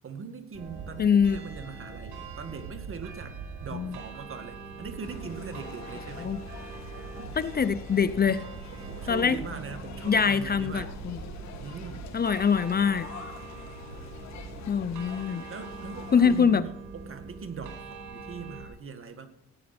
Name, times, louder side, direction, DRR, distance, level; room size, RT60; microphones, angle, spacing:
voice 1, 0.0-3.4 3.6-6.4 7.2-7.3 8.7-10.9 11.6-12.1 15.5-19.3, right 5 dB, 45° right, 7 dB, 2.0 m, -41 dB
sound 1, 0.5-18.7, right 5 dB, 85° right, 4.6 m, -42 dB
voice 2, 1.0-1.4 3.7-4.0 6.2-6.4 7.4-8.4 9.1-9.4 10.0-11.2 12.1-13.1 14.7-15.4 16.1-16.6, left 6 dB, 30° left, 15 dB, 0.6 m, -24 dB
sound 2, 5.0-16.5, left 5 dB, 65° left, 2.3 m, -45 dB
16.0 x 9.6 x 4.3 m, 0.79 s
cardioid pair, 90°, 30 cm